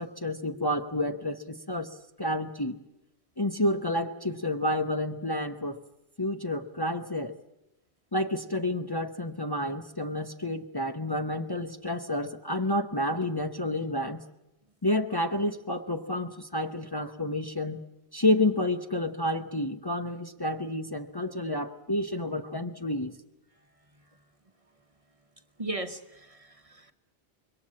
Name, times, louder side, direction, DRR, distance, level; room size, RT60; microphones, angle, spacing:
voice 1, 0.0-2.8 3.4-5.8 6.2-7.3 8.1-14.2 14.8-17.8 18.1-23.2, left 1 dB, 25° left, 5 dB, 0.9 m, -30 dB
voice 2, 25.6-26.9, right 2 dB, 35° right, 7 dB, 1.1 m, -37 dB
26.0 x 22.0 x 7.5 m, 0.92 s
omnidirectional pair, 1.1 m